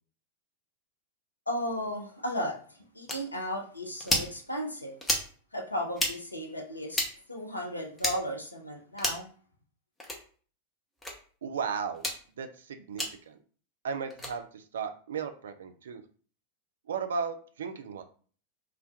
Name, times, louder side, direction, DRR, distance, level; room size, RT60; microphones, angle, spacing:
voice 1, 1.5-2.6 2.9-5.0 5.5-7.0 7.3-9.3, equal, 80° left, 2 dB, 0.5 m, -35 dB
sound 1, 3.1-3.2 4.0-4.3 5.0-5.3 5.9-6.1 6.9-7.1 8.0-8.2 9.0-9.3 10.0-10.2 11.0-11.1 11.9-12.2 13.0-13.1 14.1-14.3, left 1 dB, 10° left, 0.6 m, -30 dB
voice 2, 11.4-12.1 12.3-13.4 13.8-16.0 16.9-18.0, right 6 dB, 65° right, 8 dB, 0.3 m, -35 dB
2.2 x 2.1 x 2.6 m, 0.43 s
figure-of-eight pair, 90°, 0 cm